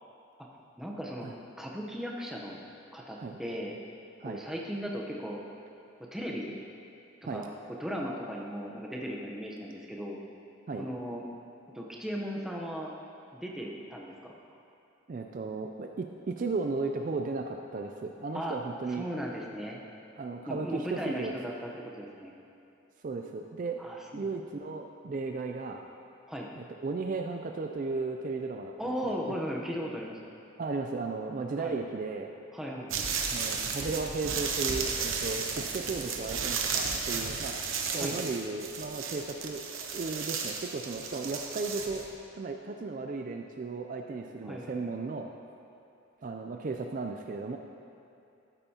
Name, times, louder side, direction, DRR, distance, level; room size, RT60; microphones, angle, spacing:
voice 1, 0.8-1.3 1.6-2.6 2.9-3.8 4.2-5.4 6.0-6.6 7.3-10.2 10.8-11.2 11.7-12.9 13.3-14.4 18.3-18.6 18.9-19.8 20.5-22.3 23.8-24.4 26.3-26.5 28.8-30.2 31.6-31.8 32.5-33.0 37.9-38.3 44.4-44.9, equal, ahead, -2 dB, 0.8 m, -37 dB
voice 2, 15.1-19.0 20.2-21.3 23.0-23.8 24.1-25.8 26.6-29.4 30.6-32.3 33.3-37.5 37.9-39.6 39.9-42.0 42.4-45.3 46.2-47.6, right 3 dB, 40° right, 3 dB, 0.3 m, -35 dB
sound 1, 32.9-42.1, right 5 dB, 90° right, 0.9 m, -34 dB
12.5 x 8.9 x 2.8 m, 2.7 s
head